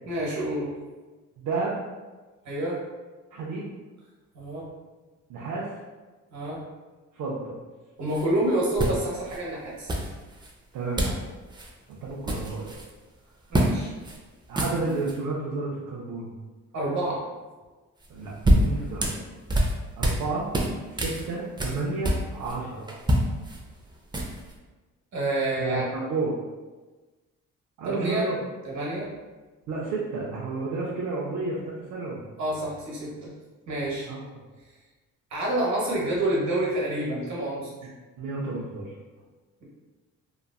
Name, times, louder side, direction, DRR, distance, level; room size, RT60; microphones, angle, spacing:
voice 1, 0.0-0.7 2.4-2.8 4.3-4.7 6.3-6.6 8.0-9.9 13.5-13.9 16.7-17.2 25.1-25.9 27.9-28.3 28.6-29.1 32.4-33.3 33.7-34.1 35.3-37.7, right 1 dB, 65° right, -4 dB, 1.1 m, -28 dB
voice 2, 1.4-1.8 3.3-3.7 5.3-5.7 7.1-7.6 10.7-11.2 11.9-12.7 14.5-16.3 18.1-19.1 20.0-20.5 20.9-22.9 25.6-26.4 27.8-28.4 29.7-32.2 34.1-34.4 38.2-38.9, right 3 dB, 80° right, -5 dB, 0.6 m, -31 dB
sound 1, 8.1-8.3 8.8-9.4 9.9-10.5 11.0-11.2 11.5-11.7 12.0-12.9 13.5-13.8 14.0-14.2 14.5-15.2 18.0-20.2 20.5-22.6 22.9-24.5, equal, 15° right, 0.4 m, -26 dB
3.0 x 2.4 x 2.2 m, 1.3 s
cardioid pair, 90°, 30 cm